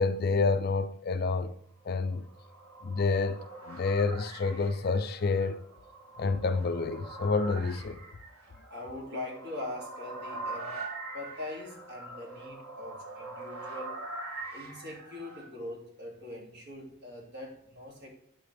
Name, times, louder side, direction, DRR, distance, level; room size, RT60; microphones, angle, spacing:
voice 1, 0.0-1.5 1.8-2.2 2.8-5.6 6.2-8.0, left 4 dB, 45° left, 0.4 m, -28 dB
sound 1, 2.1-15.5, right 2 dB, 80° right, 1.6 m, -43 dB
voice 2, 8.7-10.8 11.1-14.0 14.5-18.2, left 1 dB, 50° right, 2.6 m, -42 dB
11.5 x 4.9 x 3.4 m
head